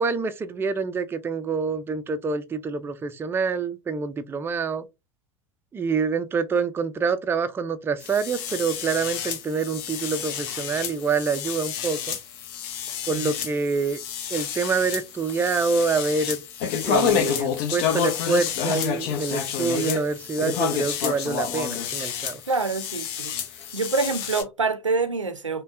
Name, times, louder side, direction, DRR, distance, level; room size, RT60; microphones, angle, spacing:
voice 1, 0.0-4.9 5.7-12.2 13.1-14.0 14.3-16.4 16.8-22.4, right 5 dB, 15° right, 0.4 m, -26 dB
sound 1, 8.0-24.4, left 8 dB, 50° left, 0.7 m, -29 dB
voice 2, 22.5-23.3 23.7-25.6, right 4 dB, 85° right, 0.5 m, -26 dB
5.2 x 2.2 x 2.5 m
figure-of-eight pair, 75°, 16 cm